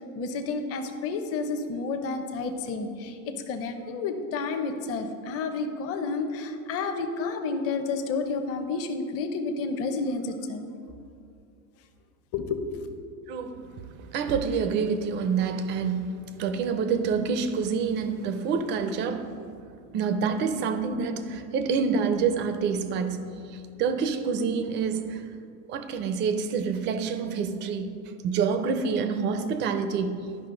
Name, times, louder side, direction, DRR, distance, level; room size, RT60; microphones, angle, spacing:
voice 1, 0.1-10.6 12.3-12.6, left 4 dB, 30° left, 6 dB, 0.8 m, -30 dB
voice 2, 13.3-13.7 14.1-19.3 19.9-25.2 25.7-28.0 28.2-30.3, right 5 dB, 25° right, 9 dB, 0.4 m, -27 dB
12.0 x 5.3 x 3.8 m, 2.4 s
supercardioid pair, 135°, 45 cm